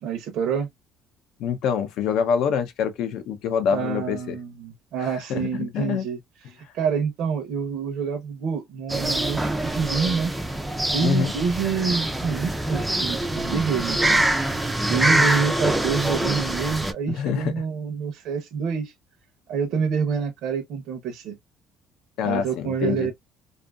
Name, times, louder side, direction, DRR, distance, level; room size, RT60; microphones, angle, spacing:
voice 1, 0.0-0.7 3.7-6.2 6.7-10.3 10.9-14.3 14.9-18.9 19.5-21.4 22.2-23.1, right 6 dB, 60° right, 0.6 m, -27 dB
voice 2, 1.4-4.4 5.0-6.0 11.0-11.3 17.1-17.5 22.2-23.1, left 7 dB, 65° left, 0.6 m, -25 dB
sound 1, 8.9-16.9, right 1 dB, 5° right, 0.3 m, -24 dB
2.6 x 2.4 x 2.3 m
cardioid pair, 160°, 0 cm